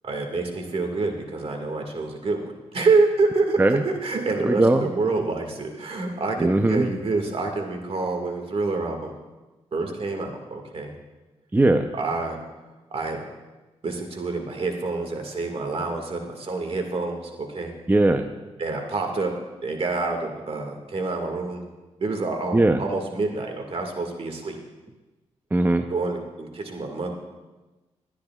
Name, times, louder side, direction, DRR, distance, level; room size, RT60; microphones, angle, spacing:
voice 1, 0.0-9.1 9.7-10.9 11.9-12.4 12.9-13.3 13.8-17.7 18.6-19.3 19.6-21.6 22.0-24.6 25.9-27.1, right 3 dB, 55° right, 3 dB, 1.8 m, -27 dB
voice 2, 4.4-4.9 6.4-6.9 11.5-11.9 17.9-18.3 22.5-22.8 25.5-25.9, right 2 dB, 15° right, 7 dB, 0.6 m, -19 dB
24.0 x 10.0 x 2.4 m, 1.2 s
cardioid pair, 65°, 12 cm